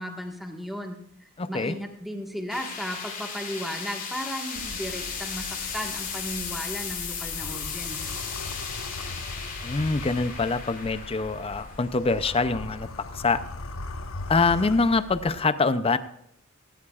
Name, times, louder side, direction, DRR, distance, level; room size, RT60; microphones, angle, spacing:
voice 1, 0.0-8.1, equal, ahead, 1 dB, 1.5 m, -35 dB
voice 2, 1.4-1.7 9.6-13.4 14.3-16.0, left 3 dB, 25° left, 13 dB, 0.5 m, -24 dB
sound 1, 2.5-13.6, left 6 dB, 45° left, 3.4 m, -36 dB
sound 2, 4.5-15.4, left 2 dB, 75° left, 0.9 m, -40 dB
17.0 x 17.0 x 2.4 m, 0.76 s
head